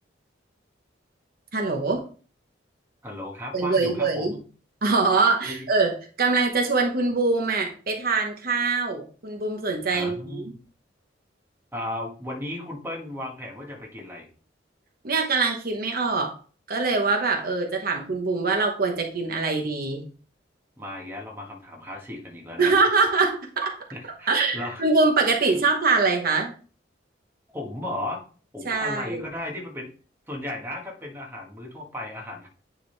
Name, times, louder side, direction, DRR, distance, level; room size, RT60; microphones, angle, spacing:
voice 1, 1.5-2.0 3.5-4.3 4.8-10.4 15.0-16.3 16.7-20.1 22.6-23.7 24.3-26.5 28.6-29.2, right 3 dB, 55° right, 2 dB, 1.0 m, -23 dB
voice 2, 3.0-4.4 5.5-5.7 9.9-10.6 11.7-14.3 20.8-22.8 23.9-24.8 25.5-25.6 27.5-28.2 28.5-29.9 30.3-32.5, left 1 dB, 10° right, 0 dB, 1.5 m, -35 dB
9.5 x 3.8 x 3.3 m, 0.39 s
head